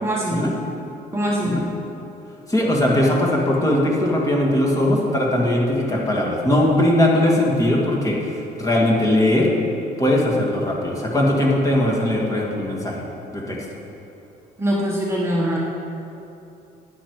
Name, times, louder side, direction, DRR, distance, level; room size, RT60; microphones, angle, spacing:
voice 1, 0.0-0.4 1.1-1.6 14.6-15.6, equal, 15° right, -3 dB, 1.2 m, -22 dB
voice 2, 2.5-9.5 10.0-13.0 13.3-13.7, left 1 dB, 20° left, -2 dB, 2.1 m, -20 dB
10.0 x 9.6 x 4.8 m, 2.8 s
cardioid pair, 110°, 17 cm